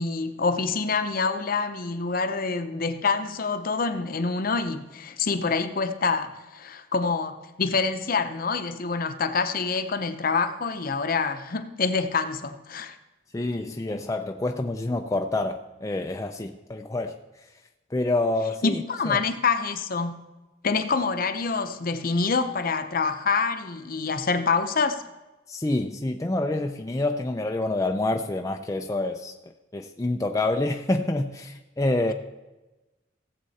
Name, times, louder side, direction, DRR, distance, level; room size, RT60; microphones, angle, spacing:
voice 1, 0.0-13.0 18.6-20.2 20.6-25.0, left 4 dB, 50° left, 0.8 m, -26 dB
voice 2, 13.3-17.2 17.9-19.2 25.5-29.3 29.7-32.1, left 2 dB, 15° left, 0.4 m, -27 dB
17.0 x 7.6 x 4.2 m
head